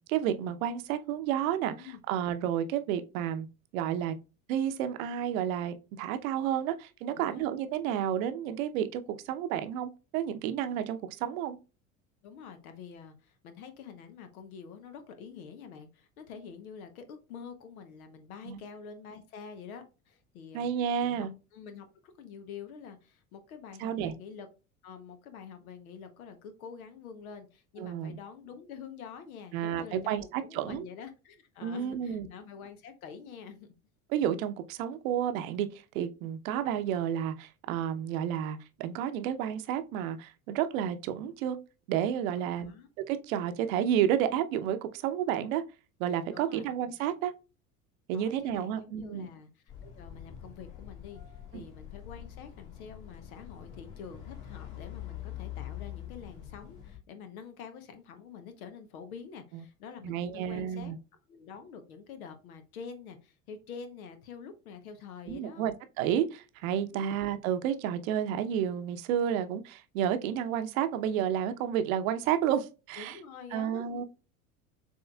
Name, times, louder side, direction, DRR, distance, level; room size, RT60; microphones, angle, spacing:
voice 1, 0.0-1.7 2.1-3.5 3.7-4.1 4.5-11.6 18.5-18.6 20.5-21.3 23.8-24.1 27.8-28.2 29.5-30.8 31.6-32.3 34.1-35.7 35.9-41.6 41.9-42.7 43.1-45.6 46.0-47.3 48.1-49.3 51.5-51.6 60.0-61.0 65.3-73.2 73.5-74.0, right 9 dB, 65° right, 0.8 m, -31 dB
voice 2, 12.2-20.7 21.0-24.5 24.8-33.7 42.4-42.9 46.3-46.7 48.1-60.9 61.3-65.7 66.9-67.1 73.0-74.0, left 6 dB, 75° left, 0.9 m, -47 dB
sound 1, 49.7-57.0, left 11 dB, 55° left, 2.2 m, -44 dB
7.1 x 3.1 x 2.3 m
hypercardioid pair, 75°, 43 cm